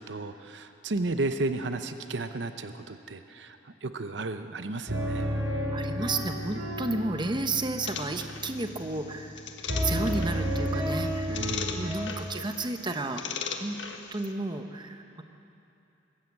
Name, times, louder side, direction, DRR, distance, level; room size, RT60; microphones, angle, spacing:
voice 1, 0.0-5.3 11.3-12.0, right 2 dB, 70° right, 9 dB, 0.8 m, -33 dB
sound 1, 4.9-9.4 9.7-12.1, equal, 90° right, 5.3 m, -32 dB
voice 2, 5.7-9.4 9.8-13.2 13.6-13.8 14.1-15.2, right 2 dB, 25° right, 6 dB, 1.0 m, -32 dB
sound 2, 7.9-14.3, left 6 dB, 80° left, 1.4 m, -39 dB
21.5 x 14.0 x 8.5 m, 2.8 s
head